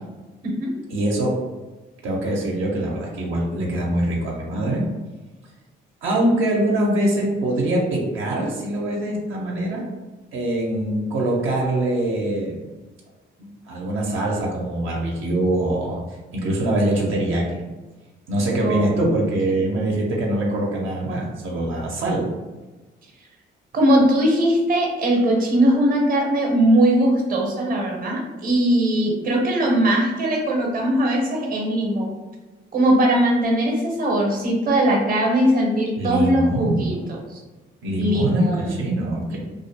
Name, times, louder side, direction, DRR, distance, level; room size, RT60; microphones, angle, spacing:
voice 1, 0.9-1.3 2.0-4.8 6.0-9.8 10.3-12.6 13.7-16.0 16.3-17.6 18.3-22.3 36.0-37.1 37.8-39.4, right 1 dB, 80° right, -3 dB, 0.6 m, -23 dB
voice 2, 18.6-18.9 23.7-32.2 32.7-37.4 38.0-38.8 39.3-39.4, right 1 dB, 45° right, 0 dB, 0.7 m, -20 dB
2.4 x 2.1 x 2.8 m, 1.2 s
cardioid pair, 90°, 20 cm